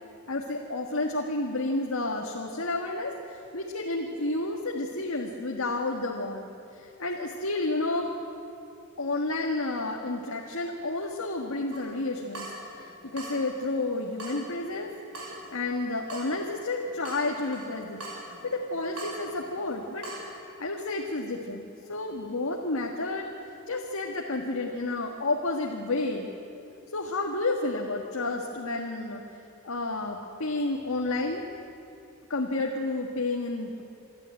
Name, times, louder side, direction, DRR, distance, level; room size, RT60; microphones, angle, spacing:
voice 1, 0.3-8.1 9.0-12.5 12.7-14.9 15.5-20.1 20.6-23.3 23.7-26.3 26.9-29.2 29.6-31.4 32.3-33.8, left 2 dB, 80° left, 0 dB, 1.6 m, -31 dB
Water tap faucet / Drip, 11.7-20.3, right 1 dB, 75° right, 5.5 m, -43 dB
27.0 x 12.0 x 9.1 m, 2.7 s
head